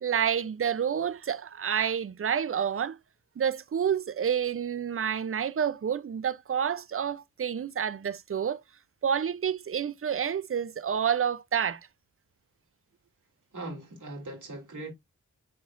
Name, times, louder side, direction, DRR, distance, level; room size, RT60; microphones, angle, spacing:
voice 1, 0.0-3.0 3.4-8.6 9.0-11.8, right 8 dB, 45° right, 0.5 m, -29 dB
voice 2, 13.5-14.9, right 2 dB, 70° right, 3.3 m, -40 dB
9.4 x 4.2 x 2.5 m
wide cardioid pair, 75°, 32 cm